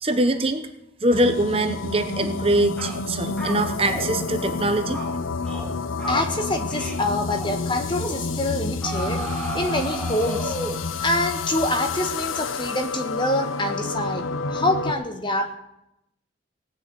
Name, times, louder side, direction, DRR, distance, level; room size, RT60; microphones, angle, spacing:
voice 1, 0.0-0.7 1.0-5.0, right 1 dB, 30° right, 7 dB, 0.8 m, -23 dB
sound 1, 1.1-14.9, left 4 dB, 90° left, 0.8 m, -29 dB
sound 2, 2.2-2.4 2.8-3.0 3.4-4.1 4.4-4.6 4.9-5.1 5.4-5.7 6.0-6.3 6.7-7.0 7.3-7.6 8.0-8.2 8.8-10.9, right 1 dB, 5° left, 2.3 m, -33 dB
voice 2, 6.1-10.6 11.0-15.5, left 1 dB, 25° left, 6 dB, 1.4 m, -26 dB
17.5 x 6.5 x 9.2 m, 0.84 s
head